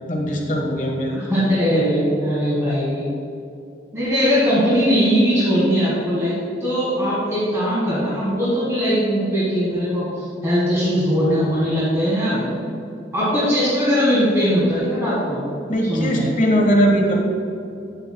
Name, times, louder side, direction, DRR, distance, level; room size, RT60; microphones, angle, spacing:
voice 1, 0.1-1.2 15.7-17.1, equal, 45° left, 0 dB, 1.3 m, -19 dB
voice 2, 1.1-3.0 3.9-12.5 13.1-15.4 15.9-16.3, equal, 15° right, -9 dB, 1.6 m, -20 dB
9.2 x 8.1 x 2.2 m, 2.6 s
head